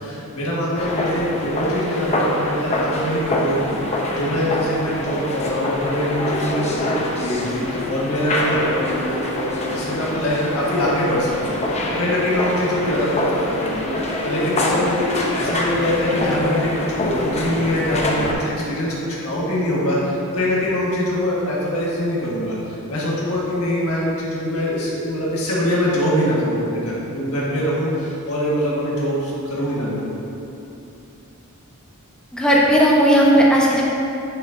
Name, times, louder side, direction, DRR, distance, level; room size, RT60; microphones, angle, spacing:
voice 1, 0.0-3.8 4.2-11.6 11.9-15.0 15.3-18.9 19.2-30.2, equal, 75° left, -6 dB, 1.7 m, -23 dB
sound 1, 0.8-18.3, left 1 dB, 30° left, 0.8 m, -25 dB
voice 2, 32.3-33.8, equal, 5° left, -5 dB, 1.0 m, -15 dB
9.7 x 6.0 x 2.7 m, 2.8 s
head